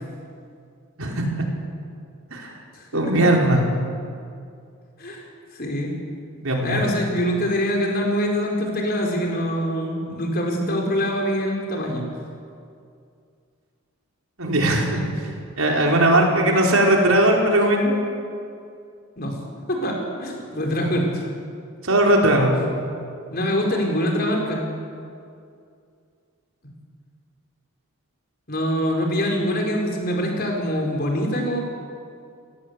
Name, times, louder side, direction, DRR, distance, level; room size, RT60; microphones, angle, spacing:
voice 1, 1.0-1.5 2.3-2.5 2.9-3.6 6.4-6.8 14.4-15.0 15.6-17.9 21.8-22.5, right 1 dB, 75° right, 0 dB, 4.6 m, -18 dB
voice 2, 5.5-5.9 6.6-12.0 19.2-19.4 19.7-21.3 23.3-24.6 28.5-31.6, equal, 45° left, 0 dB, 4.9 m, -24 dB
29.5 x 17.5 x 8.3 m, 2.4 s
head